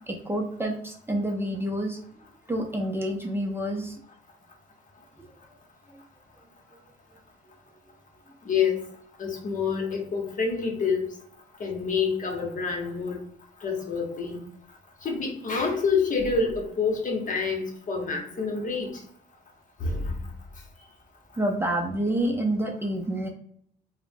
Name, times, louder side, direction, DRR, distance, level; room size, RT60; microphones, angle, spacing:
voice 1, 0.1-2.0 2.5-4.0 21.4-23.3, right 1 dB, 10° right, 0 dB, 0.5 m, -28 dB
voice 2, 8.4-8.8 9.2-11.0 11.6-13.2 13.6-14.4 15.0-18.9 19.8-20.0, left 5 dB, 45° left, 1 dB, 0.9 m, -27 dB
3.2 x 2.1 x 2.5 m, 0.66 s
cardioid pair, 85°, 18 cm